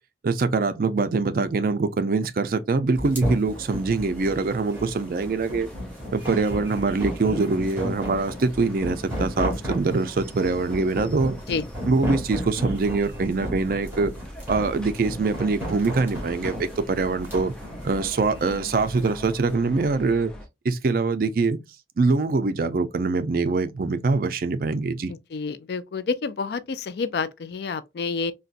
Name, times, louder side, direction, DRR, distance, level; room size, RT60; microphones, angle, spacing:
voice 1, 0.2-5.7 6.1-11.4 11.9-14.1 14.5-17.5 17.8-20.3 20.6-21.6 22.0-25.1, right 3 dB, 55° right, 0.4 m, -24 dB
sound 1, 3.0-19.2, equal, 10° right, 1.4 m, -33 dB
sound 2, 3.5-20.5, left 1 dB, 5° left, 0.6 m, -42 dB
voice 2, 25.3-28.3, left 4 dB, 65° left, 0.4 m, -28 dB
3.9 x 2.2 x 2.4 m
head